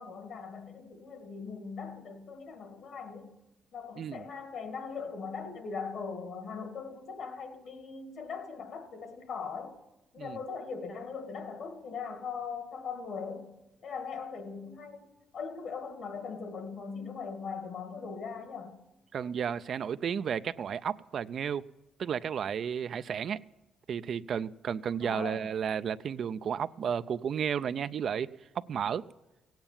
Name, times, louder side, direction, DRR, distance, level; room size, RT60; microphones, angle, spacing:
voice 1, 0.0-3.4 3.7-9.8 10.1-13.6 13.8-15.1 15.3-18.8 25.0-25.5, left 5 dB, 65° left, 1.9 m, -40 dB
voice 2, 19.1-21.6 22.0-23.4 23.9-28.3 28.7-29.0, right 7 dB, 60° right, 0.4 m, -32 dB
16.5 x 8.9 x 7.2 m
cardioid pair, 90°, 0 cm